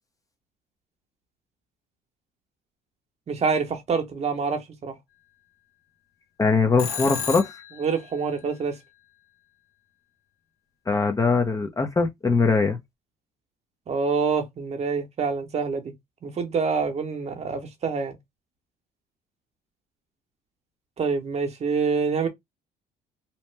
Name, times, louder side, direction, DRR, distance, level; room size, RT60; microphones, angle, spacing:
voice 1, 3.3-4.9 7.8-8.8 13.9-15.9 16.2-18.1 21.0-22.3, right 5 dB, 40° right, 0.9 m, -26 dB
voice 2, 6.4-7.5 10.9-12.8, left 4 dB, 20° left, 0.6 m, -21 dB
Telephone, 6.8-7.9, left 7 dB, 75° left, 1.0 m, -32 dB
2.8 x 2.1 x 3.2 m
cardioid pair, 110°, 17 cm